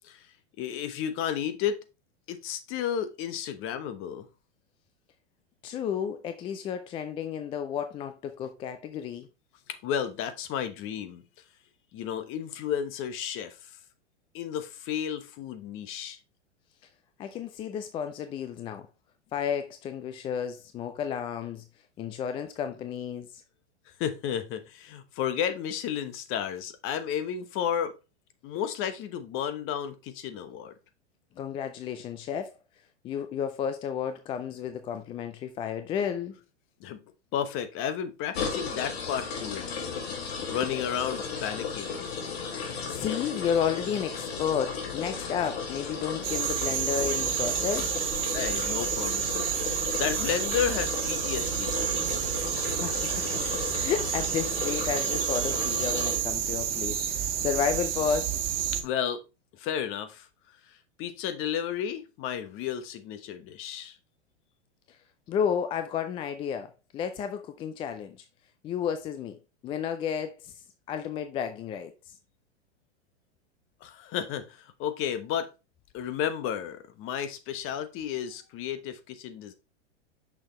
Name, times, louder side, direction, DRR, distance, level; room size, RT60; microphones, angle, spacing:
voice 1, 0.6-1.8 2.3-4.3 9.7-11.2 11.9-13.7 14.3-16.2 24.0-27.9 28.4-30.7 36.8-37.0 37.3-42.0 48.3-49.6 50.0-51.8 58.8-59.2 59.5-60.3 61.0-64.0 73.8-75.5 75.9-79.5, left 9 dB, 35° left, 1.0 m, -32 dB
voice 2, 5.6-9.3 17.2-18.9 19.3-21.6 22.0-23.4 31.4-32.6 33.0-36.4 40.4-40.5 42.9-48.0 52.8-53.4 53.7-58.3 65.3-68.2 68.6-69.4 69.6-70.5 70.9-71.9, left 8 dB, 15° left, 0.3 m, -32 dB
sound 1, 38.3-56.2, left 5 dB, 60° left, 2.1 m, -35 dB
sound 2, 46.2-58.8, right 9 dB, 55° right, 1.4 m, -30 dB
6.3 x 6.1 x 3.1 m
hypercardioid pair, 115°, 35 cm